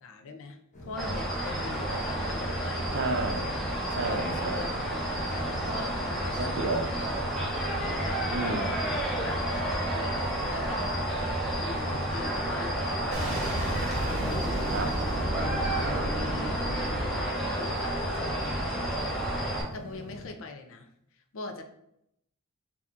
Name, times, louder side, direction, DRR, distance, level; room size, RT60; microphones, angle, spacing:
voice 1, 0.0-3.1 4.0-4.2 4.5-4.7 5.1-6.8 7.8-8.5 9.1-10.8 11.5-13.5 14.2-16.7 17.5-19.2 19.5-21.6, left 3 dB, 65° left, 5 dB, 0.5 m, -42 dB
sound 1, 0.7-20.3, left 1 dB, 35° left, 0.8 m, -44 dB
sound 2, 1.0-19.6, right 1 dB, ahead, 0.8 m, -31 dB
voice 2, 2.9-3.5 3.9-4.7 6.4-6.9 8.3-8.7 14.7-14.9, right 3 dB, 55° right, 3 dB, 0.6 m, -31 dB
Boom, 13.1-18.0, right 1 dB, 30° right, 0.9 m, -33 dB
4.4 x 2.8 x 2.5 m, 0.77 s
head